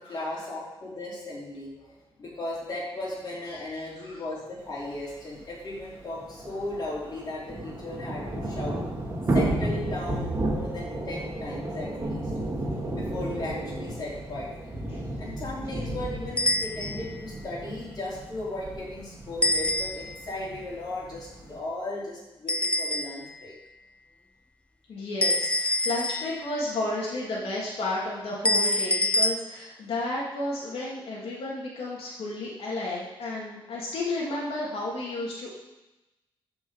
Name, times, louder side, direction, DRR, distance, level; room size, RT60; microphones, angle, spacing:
voice 1, 0.0-8.8 9.3-12.3 12.8-14.8 15.2-23.5, left 2 dB, 45° left, -7 dB, 4.5 m, -36 dB
voice 2, 3.5-4.2 14.9-15.0 24.9-35.5, left 2 dB, 85° left, -5 dB, 2.6 m, -32 dB
Thunder / Rain, 5.0-5.1 5.3-5.4 5.7-21.6, right 1 dB, 30° right, 1.9 m, -33 dB
sound 1, 16.4-17.2 19.4-20.3 22.5-23.4 25.2-26.6 28.4-29.3, left 1 dB, 10° left, 0.4 m, -26 dB
13.5 x 5.9 x 5.6 m, 0.99 s
wide cardioid pair, 155°, 9 cm